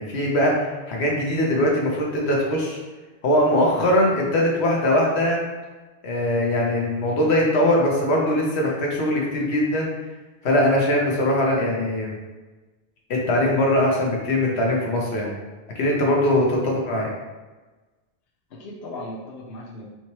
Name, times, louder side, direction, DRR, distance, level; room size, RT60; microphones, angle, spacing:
voice 1, 0.0-2.8 3.2-5.4 6.0-9.9 10.4-12.2 13.1-15.3 15.7-17.1, left 1 dB, 90° left, -2 dB, 1.2 m, -21 dB
voice 2, 18.5-19.9, left 1 dB, 70° left, -3 dB, 0.9 m, -38 dB
4.9 x 2.9 x 3.0 m, 1.2 s
omnidirectional pair, 1.1 m